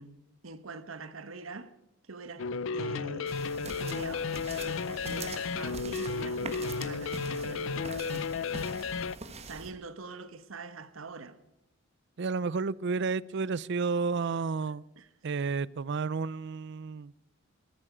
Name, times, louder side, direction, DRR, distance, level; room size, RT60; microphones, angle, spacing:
voice 1, 0.0-1.7 2.1-2.5 2.7-8.3 9.4-11.4 15.0-15.1, right 3 dB, 90° right, 1.2 m, -44 dB
sound 1, 2.4-9.2, left 5 dB, 70° left, 0.5 m, -33 dB
sound 2, 3.3-9.7, right 3 dB, 30° right, 1.4 m, -44 dB
voice 2, 12.2-14.8 15.2-17.1, right 4 dB, 60° right, 0.5 m, -31 dB
20.5 x 13.5 x 5.0 m
head